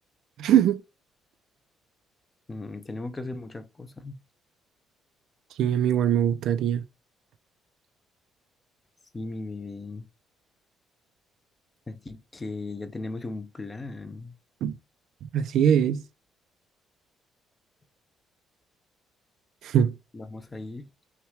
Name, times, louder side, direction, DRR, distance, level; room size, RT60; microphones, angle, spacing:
voice 1, 0.4-0.8 5.6-6.8 14.6-14.8 15.3-16.0 19.6-19.9, right 9 dB, 60° right, 0.4 m, -22 dB
voice 2, 2.5-4.1 9.1-10.1 11.9-14.3 20.1-20.9, left 3 dB, 15° left, 0.4 m, -37 dB
5.7 x 2.2 x 3.1 m
cardioid pair, 170°, 0 cm